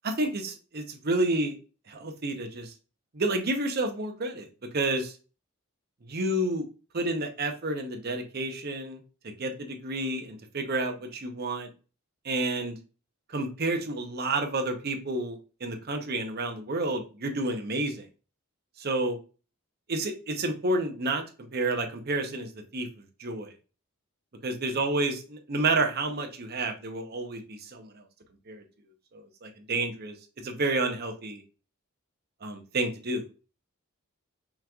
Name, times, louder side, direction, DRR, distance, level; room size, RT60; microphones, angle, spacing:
voice 1, 0.0-1.6 1.9-2.7 3.1-4.5 4.7-5.1 6.0-6.6 6.9-9.0 9.2-11.7 12.2-12.7 13.3-18.1 18.8-19.2 19.9-21.2 21.5-22.9 23.2-23.5 24.4-28.0 28.5-28.6 29.1-30.1 30.4-31.4 32.4-33.3, right 2 dB, 50° right, 4 dB, 0.8 m, -30 dB
5.6 x 3.0 x 2.3 m, 0.34 s
head